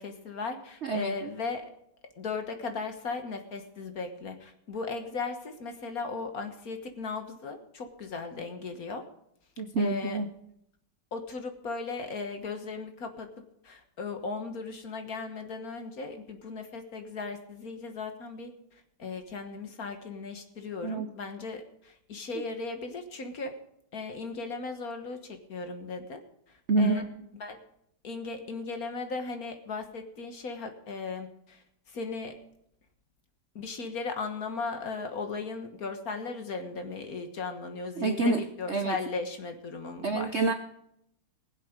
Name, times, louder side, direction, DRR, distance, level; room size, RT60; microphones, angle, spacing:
voice 1, 0.0-1.7 2.2-9.0 9.8-10.2 11.1-13.3 13.6-18.5 19.0-23.6 23.9-26.2 26.5-27.1 27.4-27.6 28.0-32.4 33.5-40.5, left 4 dB, 45° left, 6 dB, 1.6 m, -37 dB
voice 2, 0.8-1.1 9.6-10.3 20.8-21.1 26.7-27.0 38.0-38.4 38.7-39.0 40.0-40.5, right 3 dB, 85° right, 6 dB, 0.6 m, -27 dB
20.5 x 7.7 x 5.2 m, 0.74 s
omnidirectional pair, 2.4 m